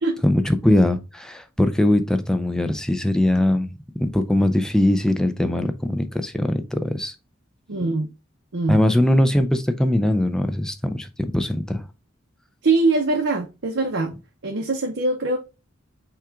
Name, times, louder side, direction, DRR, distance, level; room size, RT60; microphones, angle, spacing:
voice 1, 0.2-3.7 4.0-7.1 8.7-11.1 11.3-11.8, left 1 dB, 5° left, 0.4 m, -21 dB
voice 2, 7.7-8.1 8.5-8.8 12.6-14.1 14.4-15.4, right 3 dB, 80° right, 0.7 m, -22 dB
5.6 x 2.4 x 3.5 m
head